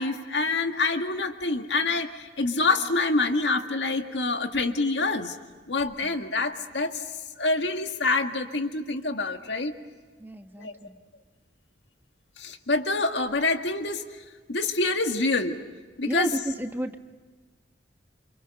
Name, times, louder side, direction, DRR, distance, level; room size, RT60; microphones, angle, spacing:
voice 1, 0.0-5.4 5.7-7.0 7.4-9.7 10.6-10.7 12.4-14.1 14.5-15.6 16.0-16.3, left 3 dB, 75° left, 5 dB, 1.9 m, -26 dB
voice 2, 10.2-11.0 16.0-17.1, right 1 dB, 10° right, 6 dB, 1.1 m, -33 dB
29.0 x 25.5 x 6.7 m, 1.4 s
head